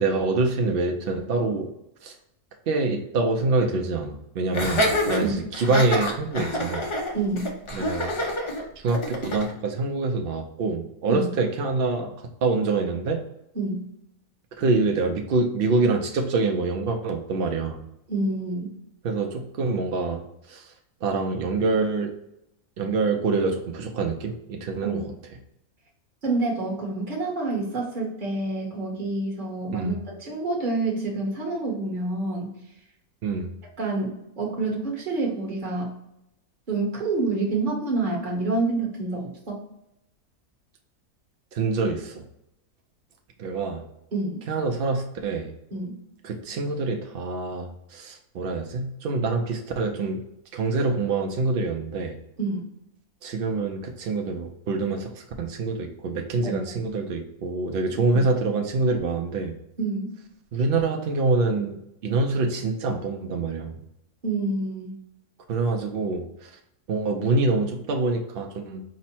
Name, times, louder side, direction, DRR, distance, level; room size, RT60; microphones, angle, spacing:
voice 1, 0.0-1.7 2.0-2.1 2.7-6.8 7.7-8.1 8.8-13.2 14.6-17.8 19.0-20.7 21.0-22.1 22.8-25.1 29.7-30.0 33.2-33.5 41.5-42.2 43.4-43.8 44.5-45.5 46.2-50.2 50.5-52.1 53.2-59.5 60.5-63.7 65.5-66.5 66.9-68.8, right 3 dB, 80° right, 2 dB, 0.5 m, -26 dB
Laughter, 4.5-9.5, left 1 dB, 50° left, 0.3 m, -27 dB
voice 2, 7.1-7.5 11.1-11.3 13.5-13.9 18.1-18.7 24.8-25.0 26.2-32.5 33.8-35.9 36.7-39.6 44.1-44.4 45.7-46.0 52.4-52.7 56.4-56.7 57.9-58.2 59.8-60.1 64.2-65.0, right 3 dB, 40° right, -1 dB, 1.1 m, -28 dB
5.1 x 2.0 x 4.2 m, 0.83 s
omnidirectional pair, 1.6 m